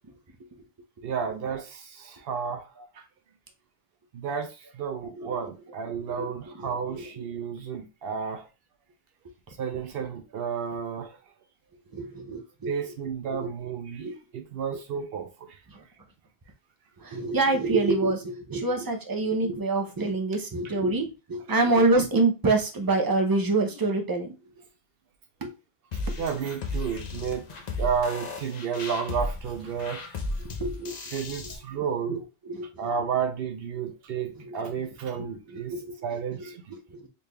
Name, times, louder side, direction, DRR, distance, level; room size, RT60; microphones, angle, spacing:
voice 1, 1.0-2.6 4.1-8.4 9.6-11.2 12.7-15.3 26.2-27.5 27.8-30.1 31.1-32.2 32.8-35.7 36.0-36.6, right 7 dB, 70° right, 0.8 m, -31 dB
voice 2, 5.0-5.4 6.0-6.7 7.0-7.6 11.9-12.7 13.3-13.5 14.0-14.1 15.7-15.8 17.0-24.3 25.4-25.5 26.1-26.2 30.6-31.0 31.7-32.9 33.7-33.9 34.4-34.6 35.2-36.4 36.7-37.1, right 3 dB, 30° right, 0.5 m, -27 dB
sound 1, 25.9-31.6, left 2 dB, 50° left, 0.7 m, -34 dB
3.9 x 3.3 x 2.2 m
omnidirectional pair, 1.1 m